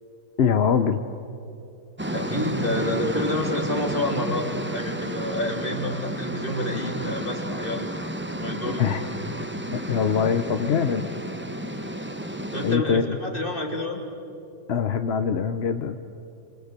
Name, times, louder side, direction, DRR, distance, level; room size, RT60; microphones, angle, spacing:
voice 1, 0.4-1.0 8.6-9.0 9.7-11.1 12.6-13.2 14.7-16.0, left 7 dB, 50° left, 9 dB, 0.8 m, -23 dB
sound 1, 2.0-12.8, right 1 dB, 10° right, 0.7 m, -32 dB
voice 2, 2.1-7.9 8.4-8.8 11.9-12.1 12.5-14.0, left 1 dB, 30° left, 2 dB, 3.2 m, -29 dB
26.5 x 26.5 x 8.2 m, 2.7 s
omnidirectional pair, 1.8 m